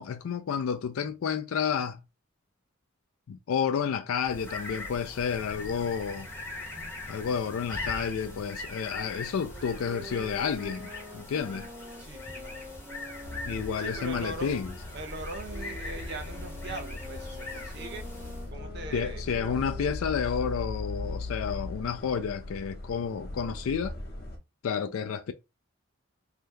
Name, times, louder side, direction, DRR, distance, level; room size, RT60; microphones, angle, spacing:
voice 1, 0.0-2.0 3.3-6.3 7.1-11.7 13.5-14.7 18.9-24.0 24.6-25.3, left 7 dB, 80° left, 0.4 m, -30 dB
sound 1, 4.2-18.5, left 2 dB, 10° left, 0.9 m, -41 dB
Wind instrument woodwind instrument, 8.9-14.8 15.5-20.9, equal, 10° right, 0.6 m, -46 dB
voice 2, 12.0-12.8 13.8-14.6 14.9-18.0 18.5-19.2, right 2 dB, 55° right, 0.6 m, -41 dB
sound 2, 13.2-24.4, left 2 dB, 50° left, 0.9 m, -39 dB
2.8 x 2.2 x 3.4 m
head